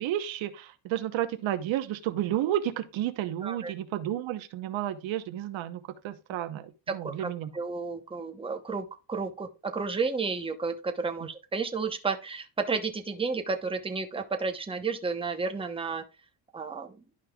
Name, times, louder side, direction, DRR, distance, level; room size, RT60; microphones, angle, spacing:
voice 1, 0.0-7.5, right 12 dB, 70° right, 1.0 m, -31 dB
voice 2, 3.4-3.7 6.9-16.0 16.5-17.0, right 4 dB, 10° right, 0.9 m, -32 dB
11.5 x 5.3 x 2.3 m
cardioid pair, 125°, 48 cm